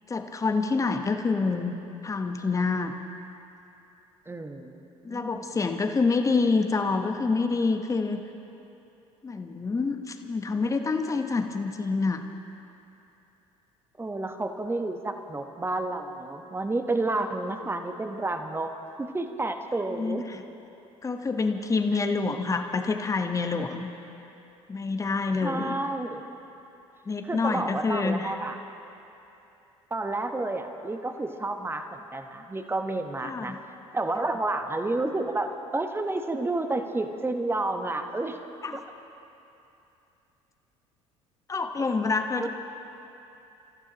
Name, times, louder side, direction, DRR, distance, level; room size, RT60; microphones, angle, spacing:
voice 1, 0.1-1.7 2.0-2.9 5.0-8.2 9.2-12.2 19.9-20.4 21.0-23.9 24.7-25.8 27.1-28.4 33.2-33.6 38.6-38.8 41.5-42.5, left 4 dB, 20° left, 6 dB, 1.0 m, -27 dB
voice 2, 4.3-5.4 14.0-18.7 19.0-20.3 25.4-26.2 27.2-28.6 29.9-33.6 33.9-38.4 38.7-38.8 42.4-42.5, right 2 dB, 15° right, 6 dB, 1.1 m, -30 dB
28.0 x 15.0 x 3.0 m, 2.9 s
figure-of-eight pair, 60°, 17 cm